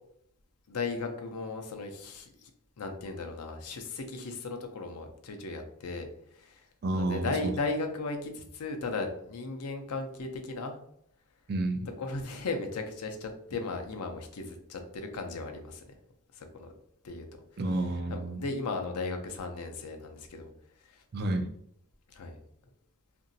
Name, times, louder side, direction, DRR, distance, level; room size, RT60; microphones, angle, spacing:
voice 1, 0.7-2.5 2.8-6.1 6.4-6.7 6.9-10.8 12.0-15.8 16.4-16.7 17.0-17.2 18.1-20.5 22.1-22.4, left 3 dB, 80° left, 5 dB, 0.5 m, -36 dB
voice 2, 6.8-7.5 11.5-11.9 17.6-18.4 21.1-21.5, right 2 dB, 45° right, 6 dB, 0.4 m, -30 dB
2.9 x 2.6 x 2.6 m, 0.72 s
head